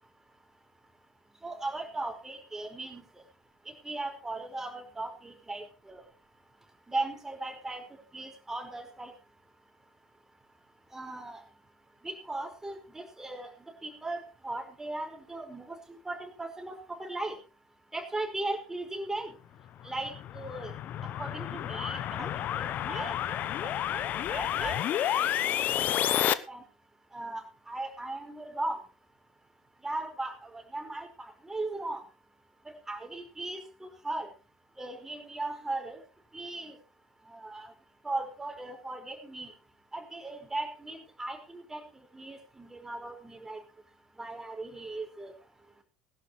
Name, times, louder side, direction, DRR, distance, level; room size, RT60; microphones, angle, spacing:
voice 1, 1.4-3.0 3.8-6.0 6.9-7.8 8.1-9.1 10.9-11.4 12.0-13.5 13.8-17.4 17.9-19.3 19.8-20.7 21.2-25.7 26.0-26.6 27.1-28.8 29.8-32.0 32.9-34.3 34.8-36.0 36.3-36.7 37.3-37.7 38.0-39.5 39.9-41.8 42.1-43.6 44.2-45.3, right 2 dB, 10° right, 4 dB, 5.3 m, -38 dB
sound 1, 19.8-26.3, left 11 dB, 45° left, 0.9 m, -30 dB
20.5 x 11.5 x 3.3 m, 0.32 s
figure-of-eight pair, 70°, 4 cm